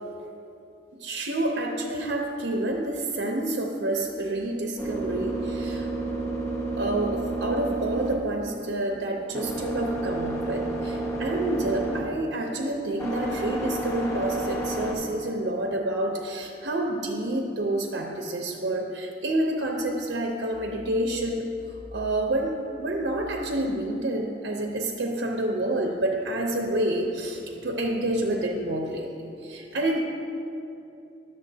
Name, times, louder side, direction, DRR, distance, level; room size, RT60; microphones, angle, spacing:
voice 1, 0.9-5.9 6.8-30.0, right 1 dB, 80° right, 1 dB, 0.6 m, -28 dB
sound 1, 3.8-15.0, right 2 dB, 15° left, 0.9 m, -31 dB
11.0 x 6.9 x 2.7 m, 2.7 s
head